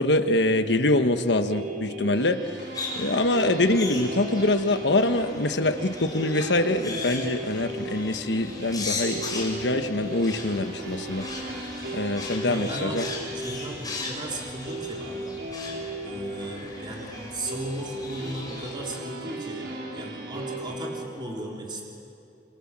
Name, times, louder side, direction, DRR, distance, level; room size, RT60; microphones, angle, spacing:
voice 1, 0.0-2.6 2.9-11.6 11.9-13.1, left 2 dB, 75° left, 8 dB, 1.3 m, -24 dB
sound 1, 1.4-21.0, right 1 dB, 85° right, 4.8 m, -36 dB
sound 2, 2.7-18.7, left 3 dB, 25° left, 5.7 m, -38 dB
voice 2, 12.4-15.3 16.0-21.9, right 1 dB, 25° right, -1 dB, 3.7 m, -36 dB
28.0 x 26.0 x 7.5 m, 2.7 s
head